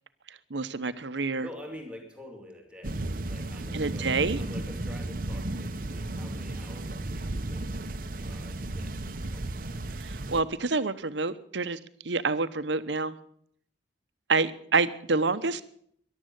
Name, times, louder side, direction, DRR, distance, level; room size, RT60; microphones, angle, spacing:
voice 1, 0.3-1.5 3.7-4.4 10.0-11.8 12.0-13.1 14.3-15.6, right 3 dB, 75° right, 12 dB, 0.9 m, -28 dB
voice 2, 1.4-9.8, left 1 dB, 5° right, 2 dB, 2.4 m, -47 dB
sound 1, 2.8-10.4, right 2 dB, 50° right, 0.9 m, -34 dB
14.0 x 11.5 x 8.1 m, 0.66 s
head